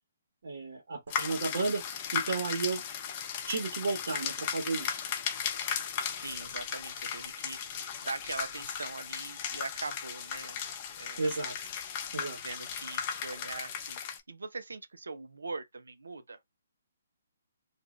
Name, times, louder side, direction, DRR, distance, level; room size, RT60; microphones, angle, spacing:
voice 1, 0.4-1.8 2.1-2.8 3.5-5.0 11.2-11.5 12.1-12.4, right 3 dB, 65° right, 1.2 m, -33 dB
sound 1, 1.1-14.2, left 8 dB, 35° left, 0.6 m, -36 dB
voice 2, 6.2-10.6 11.0-11.3 12.4-14.0 14.3-16.4, right 3 dB, 80° right, 0.6 m, -41 dB
2.6 x 2.4 x 3.1 m
hypercardioid pair, 145°, 0 cm